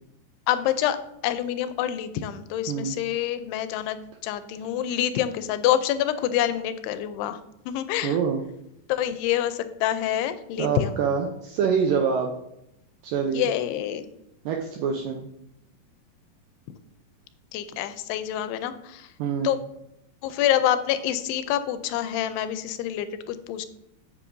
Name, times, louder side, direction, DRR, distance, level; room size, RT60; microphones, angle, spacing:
voice 1, 0.5-1.0 1.2-4.0 4.2-7.4 7.7-8.2 8.9-11.0 13.3-14.1 17.5-19.1 19.4-19.6 20.2-23.7, left 11 dB, 90° left, 11 dB, 2.7 m, -26 dB
voice 2, 8.0-8.4 10.6-12.3 13.0-13.5 14.5-15.3 19.2-19.5, right 6 dB, 85° right, 3 dB, 1.9 m, -25 dB
8.4 x 7.9 x 2.6 m, 0.80 s
omnidirectional pair, 4.6 m